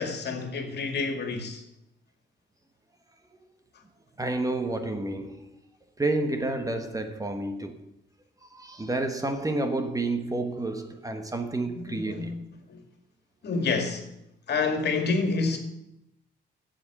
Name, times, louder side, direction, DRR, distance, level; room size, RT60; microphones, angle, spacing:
voice 1, 0.0-1.6 11.7-12.4 12.7-12.8 13.4-14.1 14.5-15.6, left 4 dB, 60° left, 2.1 m, -28 dB
voice 2, 4.2-5.4 6.0-7.9 8.5-12.3, right 2 dB, 15° right, 1.1 m, -30 dB
7.7 x 7.6 x 8.7 m
cardioid pair, 90°, 20 cm